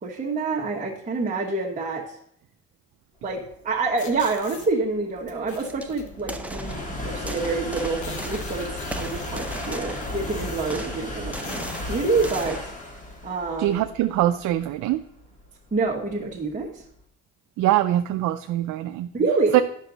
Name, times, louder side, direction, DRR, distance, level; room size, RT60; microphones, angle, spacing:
voice 1, 0.0-2.0 3.2-12.6 13.2-13.8 15.7-16.8 19.1-19.6, right 3 dB, 25° right, -5 dB, 1.3 m, -27 dB
sound 1, 3.5-16.9, left 1 dB, 25° left, 1.7 m, -36 dB
sound 2, 4.0-4.7 5.3-6.1 7.0-7.1 7.4-7.5 7.7-10.9 11.3-12.6, left 6 dB, 70° left, 1.1 m, -41 dB
sound 3, 5.6-5.8 6.2-6.9 7.3-8.6 8.9-10.3 10.7-12.8, right 1 dB, 5° right, 0.6 m, -38 dB
voice 2, 13.6-15.0 17.6-19.1 19.5-19.6, right 13 dB, 75° right, 9 dB, 0.4 m, -22 dB
9.0 x 6.0 x 4.0 m, 0.68 s
cardioid pair, 90°, 30 cm